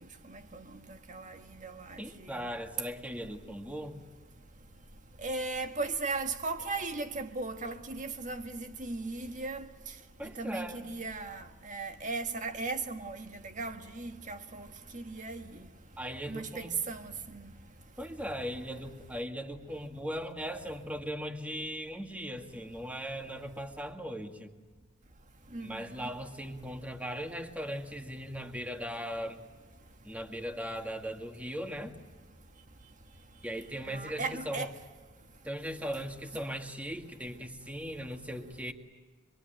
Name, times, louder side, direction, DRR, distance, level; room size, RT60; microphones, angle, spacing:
voice 1, 0.3-2.0 2.3-2.5 5.2-9.7 10.4-14.7 14.9-15.4 16.3-17.5 25.5-26.1 33.9-34.7, right 3 dB, 40° right, 1.6 m, -37 dB
voice 2, 2.0-4.0 10.2-10.8 16.0-16.7 18.0-24.5 25.6-29.4 30.0-32.0 33.4-34.7 35.4-38.7, equal, 5° right, 2.0 m, -38 dB
26.5 x 23.0 x 9.2 m
head